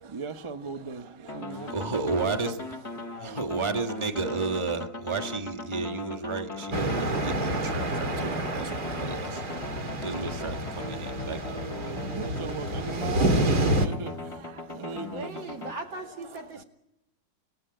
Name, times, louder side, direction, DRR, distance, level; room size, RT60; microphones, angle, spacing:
voice 1, 0.0-2.5 3.0-3.4 11.0-15.5, right 4 dB, 35° right, 0.5 m, -39 dB
sound 1, 1.3-15.7, left 2 dB, 25° left, 0.8 m, -39 dB
voice 2, 1.7-2.7 3.2-12.1, right 4 dB, 15° right, 1.4 m, -33 dB
sound 2, 6.7-13.9, right 1 dB, 55° right, 2.5 m, -29 dB
voice 3, 14.9-16.6, right 2 dB, 75° right, 3.1 m, -39 dB
28.5 x 16.5 x 9.0 m
omnidirectional pair, 2.1 m